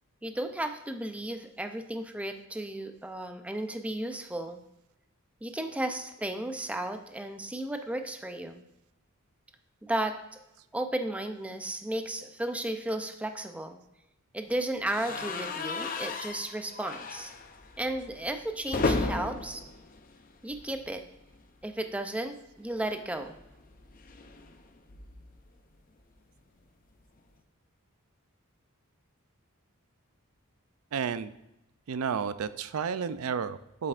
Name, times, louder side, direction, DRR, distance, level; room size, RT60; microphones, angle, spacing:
voice 1, 0.2-4.6 5.4-8.6 9.8-10.4 10.7-13.8 14.3-17.3 17.8-19.6 20.4-21.0 21.6-23.3, right 1 dB, 5° right, 7 dB, 0.4 m, -34 dB
sound 1, 14.9-20.9 21.2-21.4 21.7-21.8 23.0-25.4, left 3 dB, 40° left, 0.6 m, -35 dB
voice 2, 30.9-31.3 31.9-33.9, right 6 dB, 75° right, 14 dB, 0.4 m, -32 dB
7.9 x 7.5 x 2.5 m, 0.88 s
head